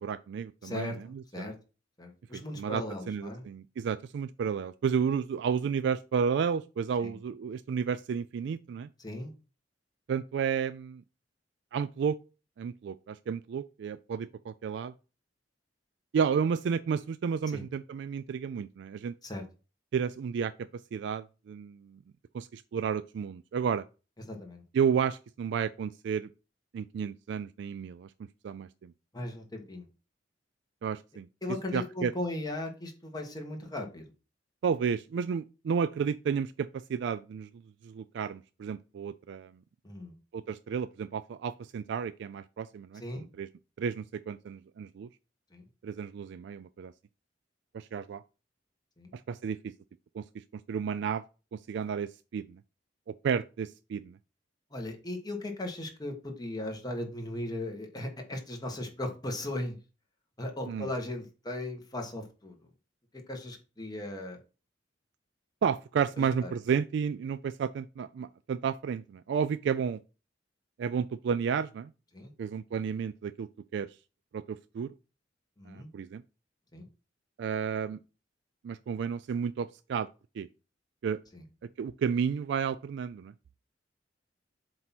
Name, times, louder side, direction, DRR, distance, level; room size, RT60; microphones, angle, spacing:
voice 1, 0.0-1.5 2.3-8.9 10.1-11.0 11.7-12.2 12.6-14.9 16.1-19.2 19.9-20.5 20.9-22.0 22.3-23.8 24.7-26.3 26.7-28.1 28.4-28.9 30.8-31.3 31.7-32.1 34.6-37.5 37.8-39.5 40.3-43.5 43.8-45.1 45.8-46.9 47.7-48.2 49.1-49.7 50.1-51.2 51.5-52.6 53.1-54.2 60.7-60.9 65.6-70.0 70.8-71.9 72.4-74.0 74.3-74.9 75.7-76.2 77.4-78.0 78.6-80.1 80.4-80.5 81.0-81.2 81.8-83.3, right 6 dB, 65° right, 0.3 m, -32 dB
voice 2, 0.6-1.0 1.3-1.5 2.0-3.4 7.0-7.2 9.0-9.3 17.5-17.6 19.2-19.4 24.3-24.6 29.1-29.9 31.4-34.1 39.8-40.1 43.0-43.2 45.5-45.6 49.0-49.1 54.7-59.8 60.4-62.5 63.1-64.4 66.2-66.5 72.1-72.3 75.6-75.9 76.7-76.8 81.3-81.4, left 1 dB, 20° left, 1.5 m, -37 dB
7.6 x 2.9 x 5.9 m
head